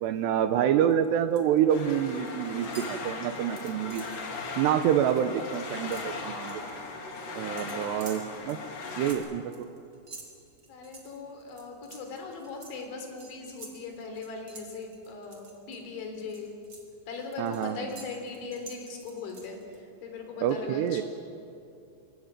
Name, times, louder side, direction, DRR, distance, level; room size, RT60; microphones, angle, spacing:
voice 1, 0.0-4.0 4.6-6.6 7.4-8.6 9.0-9.7 17.4-17.9 20.4-21.0, right 9 dB, 80° right, 9 dB, 2.5 m, -27 dB
sound 1, 0.9-1.6 1.9-2.3 2.6-4.2 4.6-4.8 5.1-6.7 7.6-15.8 16.2-19.8, right 3 dB, 30° right, 3.2 m, -50 dB
sound 2, 1.7-9.1, left 3 dB, 45° left, 3.6 m, -38 dB
voice 2, 10.7-16.6 17.1-21.0, left 4 dB, 65° left, 4 dB, 5.8 m, -39 dB
25.5 x 22.0 x 9.0 m, 2.6 s
omnidirectional pair, 5.9 m